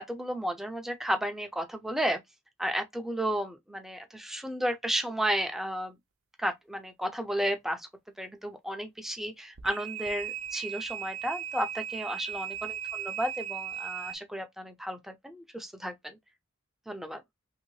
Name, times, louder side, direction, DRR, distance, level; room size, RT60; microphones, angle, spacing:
voice 1, 0.0-2.2 2.6-5.9 6.4-7.9 8.2-16.2 16.9-17.2, equal, ahead, 0.4 m, -33 dB
sound 1, 9.6-14.2, right 10 dB, 80° right, 0.6 m, -37 dB
3.0 x 2.7 x 3.1 m
head